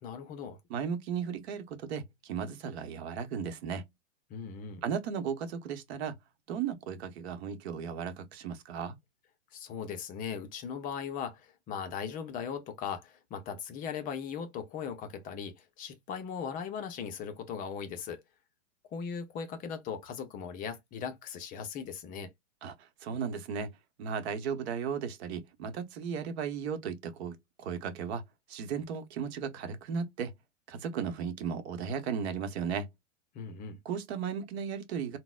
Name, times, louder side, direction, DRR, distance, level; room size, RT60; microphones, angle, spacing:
voice 1, 0.0-0.6 4.3-4.8 9.5-18.2 18.9-22.3 33.3-33.8, left 7 dB, 25° left, 0.5 m, -38 dB
voice 2, 0.7-3.8 4.8-6.2 6.5-9.0 22.6-23.7 24.0-28.2 28.5-30.3 30.7-32.9 33.8-35.2, right 7 dB, 55° right, 0.9 m, -35 dB
3.8 x 2.1 x 2.3 m
hypercardioid pair, 120°, 37 cm